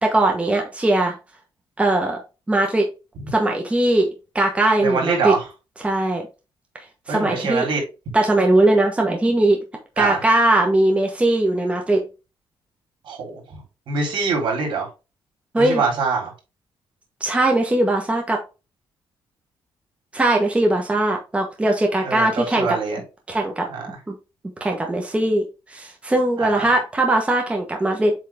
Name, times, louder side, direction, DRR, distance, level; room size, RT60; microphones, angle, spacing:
voice 1, 0.0-1.1 1.8-2.2 2.5-2.9 3.3-4.1 4.3-5.3 5.8-6.2 7.1-7.7 8.1-9.6 10.0-12.0 15.5-15.8 17.2-18.4 20.1-22.7 23.3-23.7 24.1-24.2 24.6-28.1, right 2 dB, 15° right, 1.2 m, -19 dB
voice 2, 4.8-5.4 7.1-7.8 10.0-10.2 13.1-13.4 13.9-14.9 15.6-16.3 22.0-23.0 23.7-24.0 26.4-26.7, right 4 dB, 70° right, 3.9 m, -24 dB
7.8 x 3.7 x 3.6 m
cardioid pair, 150°, 9 cm